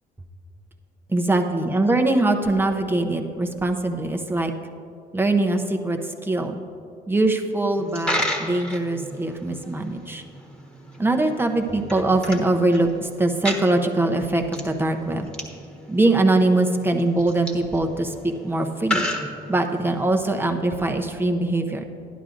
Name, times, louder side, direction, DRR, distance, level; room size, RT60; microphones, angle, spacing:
voice 1, 1.1-4.5 5.1-6.6 7.1-10.2 11.0-15.3 15.9-19.1 19.5-21.8, right 2 dB, 15° right, 4 dB, 0.7 m, -22 dB
Coin (dropping), 7.8-20.0, left 1 dB, 5° left, 1.4 m, -34 dB
11.5 x 11.0 x 2.6 m, 2.6 s
cardioid pair, 95°, 17 cm